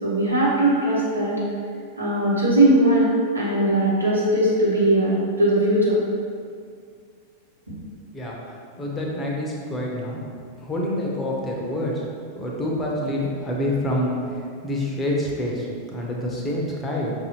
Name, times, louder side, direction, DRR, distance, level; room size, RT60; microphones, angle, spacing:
voice 1, 0.0-1.4 2.0-6.0, right 1 dB, 85° right, -7 dB, 1.1 m, -19 dB
voice 2, 8.1-10.2 10.6-12.0 12.3-17.1, left 1 dB, 20° left, -2 dB, 0.7 m, -27 dB
5.3 x 2.7 x 3.0 m, 2.2 s
figure-of-eight pair, 90°, 0 cm